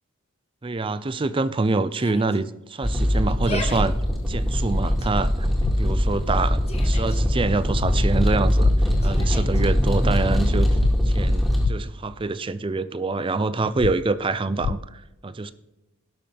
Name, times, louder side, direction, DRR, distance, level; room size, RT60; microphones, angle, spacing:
voice 1, 0.6-3.9 4.3-5.5 5.8-10.8 11.1-15.5, right 3 dB, 25° right, 14 dB, 0.4 m, -26 dB
Yell, 1.9-2.4 3.3-3.8 4.6-5.1 6.3-7.2 9.0-9.6, left 3 dB, 30° left, 1.2 m, -37 dB
sound 1, 2.8-11.7, equal, ahead, 2.1 m, -22 dB
sound 2, 5.6-5.8 7.8-7.9 8.6-8.7 10.8-10.9 11.6-11.7 13.8-13.9 14.6-14.7, left 6 dB, 55° left, 0.3 m, -25 dB
18.0 x 6.4 x 3.4 m, 0.99 s
head